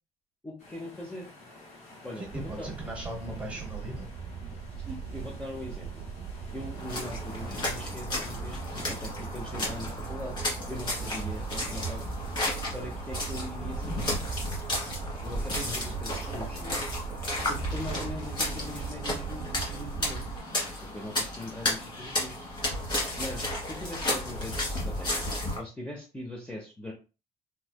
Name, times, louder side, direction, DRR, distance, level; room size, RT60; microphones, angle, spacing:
voice 1, 0.4-1.3 2.0-2.7 4.8-6.0 6.5-10.4 10.7-12.0 12.7-14.2 15.2-16.8 17.5-20.3 20.8-22.4 23.2-25.2 25.6-26.9, left 1 dB, 10° left, -2 dB, 0.7 m, -41 dB
sound 1, 0.6-7.5, left 2 dB, 70° left, 1.7 m, -51 dB
voice 2, 2.2-4.1 15.6-15.8, equal, 10° right, 1 dB, 1.1 m, -38 dB
sound 2, 2.2-20.4, right 6 dB, 60° right, 0.5 m, -39 dB
sound 3, 6.8-25.6, left 1 dB, 40° left, 1.5 m, -33 dB
3.4 x 3.1 x 2.2 m, 0.32 s
cardioid pair, 135°, 12 cm